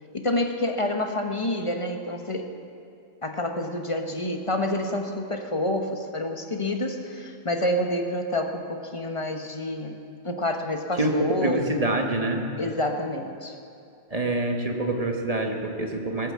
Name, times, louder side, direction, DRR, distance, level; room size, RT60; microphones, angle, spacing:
voice 1, 0.1-2.5 3.2-11.9 12.6-13.6, left 1 dB, 25° left, 4 dB, 0.8 m, -28 dB
voice 2, 11.4-12.4 14.1-16.3, right 2 dB, 25° right, 2 dB, 1.3 m, -26 dB
19.0 x 8.7 x 7.4 m, 2.5 s
omnidirectional pair, 1.6 m